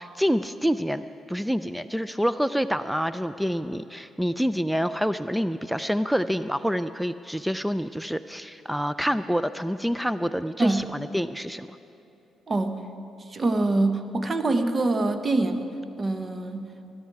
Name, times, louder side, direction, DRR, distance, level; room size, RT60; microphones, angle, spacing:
voice 1, 0.0-11.7, equal, 5° right, 13 dB, 0.4 m, -27 dB
voice 2, 12.5-12.8 13.3-15.7 16.0-16.7, right 2 dB, 35° right, 8 dB, 1.2 m, -25 dB
20.0 x 11.5 x 4.7 m, 2.8 s
supercardioid pair, 50°, 0 cm